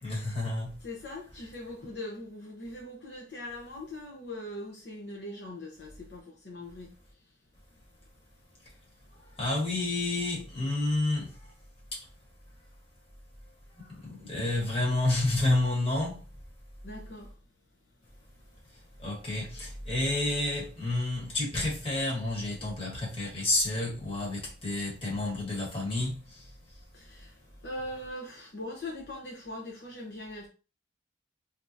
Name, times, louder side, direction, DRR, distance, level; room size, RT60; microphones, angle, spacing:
voice 1, 0.0-0.7 9.4-11.3 14.2-16.2 19.0-26.2, left 2 dB, 30° left, 1.4 m, -29 dB
voice 2, 0.8-6.9 16.8-17.3 26.9-30.5, left 1 dB, 60° left, 0.8 m, -41 dB
3.5 x 2.8 x 2.6 m
head